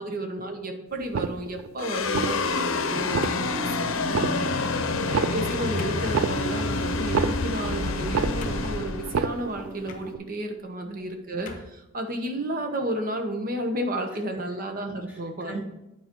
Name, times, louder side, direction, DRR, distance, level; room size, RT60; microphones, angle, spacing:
voice 1, 0.0-3.7 5.1-15.6, right 1 dB, 45° right, 4 dB, 1.0 m, -32 dB
sound 1, 1.0-1.7 2.1-2.7 3.0-3.7 4.1-4.7 5.0-7.7 8.0-8.7 9.0-9.7 10.0-10.2, right 6 dB, 90° right, 0.4 m, -29 dB
sound 2, 1.8-10.3, left 3 dB, 85° left, 0.7 m, -28 dB
sound 3, 2.0-2.5 3.2-3.9 4.5-4.7 5.3-5.4 5.8-6.1 7.1-7.7 8.0-8.1 8.4-8.9 9.8-10.1 10.9-11.0 11.4-11.8, left 2 dB, 40° left, 0.8 m, -42 dB
voice 2, 4.0-5.0 10.8-11.0 11.2-11.4 15.1-15.6, right 1 dB, 10° right, -3 dB, 1.6 m, -39 dB
8.6 x 4.9 x 4.5 m, 0.91 s
head